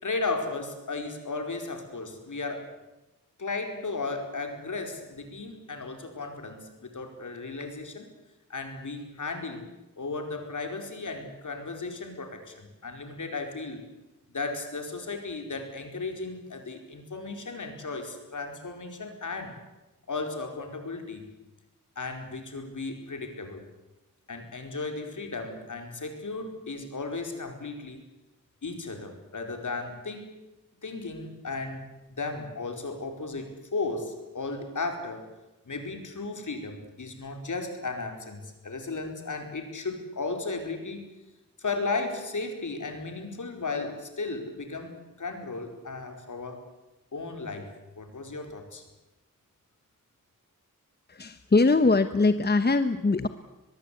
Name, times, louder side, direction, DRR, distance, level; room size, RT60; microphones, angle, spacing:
voice 1, 0.0-2.7 3.4-8.1 8.5-9.7 10.0-13.8 14.3-19.6 20.1-21.3 22.0-23.6 24.3-28.0 28.6-30.3 30.8-35.2 35.6-41.0 41.6-46.7 47.1-48.8, left 3 dB, 65° left, 5 dB, 4.7 m, -35 dB
voice 2, 51.1-53.3, left 3 dB, 30° left, 10 dB, 1.0 m, -22 dB
24.0 x 21.0 x 8.5 m, 1.0 s
wide cardioid pair, 105°, 33 cm